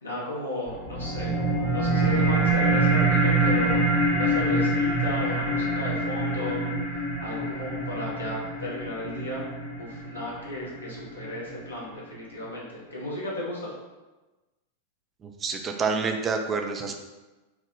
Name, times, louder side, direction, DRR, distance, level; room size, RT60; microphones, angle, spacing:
voice 1, 0.0-1.3 1.7-6.6 7.2-13.7, left 1 dB, 75° left, -5 dB, 1.0 m, -34 dB
sound 1, 0.7-11.7, right 2 dB, 45° left, 0.9 m, -25 dB
voice 2, 15.2-16.9, right 4 dB, 25° right, 4 dB, 0.4 m, -28 dB
3.4 x 2.1 x 3.6 m, 1.1 s
figure-of-eight pair, 90°, 0 cm